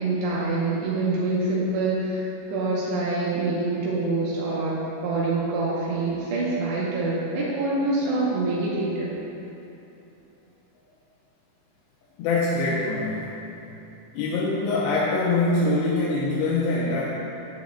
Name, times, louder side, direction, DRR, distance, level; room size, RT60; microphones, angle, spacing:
voice 1, 0.0-9.1, right 2 dB, 80° right, -6 dB, 3.0 m, -26 dB
voice 2, 12.2-13.3 14.1-17.0, left 2 dB, 85° left, -6 dB, 2.8 m, -24 dB
11.5 x 7.4 x 2.2 m, 2.9 s
omnidirectional pair, 5.1 m